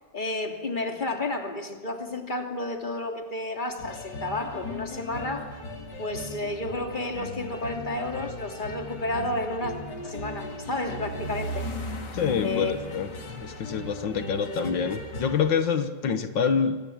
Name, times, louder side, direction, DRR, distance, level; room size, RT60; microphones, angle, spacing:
voice 1, 0.1-5.5 6.0-9.8 10.0-11.7 12.4-12.7, left 2 dB, 25° left, 4 dB, 3.0 m, -31 dB
sound 1, 3.8-15.5, left 2 dB, 65° left, 3.4 m, -37 dB
voice 2, 12.1-16.8, left 6 dB, 80° left, 9 dB, 2.0 m, -27 dB
29.0 x 23.5 x 8.7 m, 1.4 s
omnidirectional pair, 2.0 m